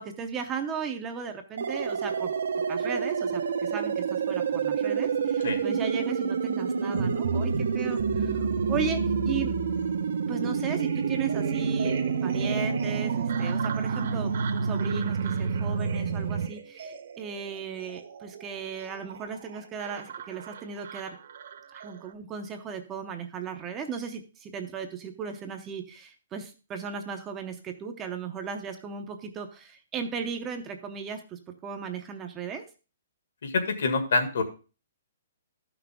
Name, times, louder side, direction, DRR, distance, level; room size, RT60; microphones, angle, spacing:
voice 1, 0.0-2.3 2.7-9.0 9.3-9.6 10.3-21.1 21.7-32.6, right 6 dB, 15° right, 5 dB, 0.7 m, -36 dB
sound 1, 1.6-16.5, right 6 dB, 70° right, 0.9 m, -28 dB
sound 2, 6.9-22.1, right 4 dB, 55° right, 1.2 m, -36 dB
voice 2, 33.4-34.4, left 3 dB, 65° left, 6 dB, 1.9 m, -26 dB
12.5 x 6.0 x 3.5 m, 0.33 s
hypercardioid pair, 170°, 0 cm